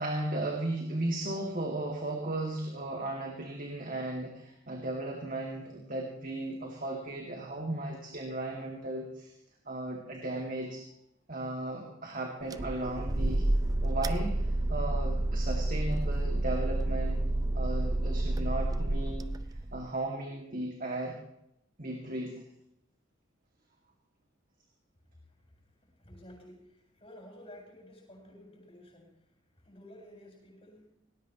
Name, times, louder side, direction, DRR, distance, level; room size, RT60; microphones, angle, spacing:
voice 1, 0.0-9.3 9.6-10.8 11.3-13.4 13.8-17.3 17.5-19.3 19.7-21.2 21.8-22.3, right 2 dB, 40° right, 0 dB, 2.3 m, -36 dB
sound 1, 12.5-19.9, right 1 dB, 20° right, 0.4 m, -30 dB
voice 2, 25.9-29.1 29.6-30.9, left 1 dB, 25° left, 0 dB, 7.8 m, -52 dB
19.0 x 18.0 x 3.1 m, 0.77 s
head